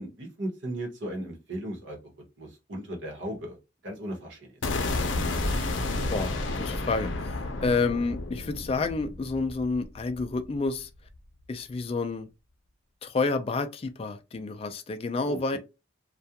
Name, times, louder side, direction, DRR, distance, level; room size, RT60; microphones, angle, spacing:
voice 1, 0.0-4.6 15.3-15.6, right 1 dB, 75° right, 0.9 m, -37 dB
sound 1, 4.6-10.7, left 2 dB, 80° left, 0.6 m, -31 dB
voice 2, 6.1-10.9 11.5-12.3 13.0-15.6, left 3 dB, 30° left, 0.3 m, -29 dB
2.4 x 2.2 x 2.7 m
head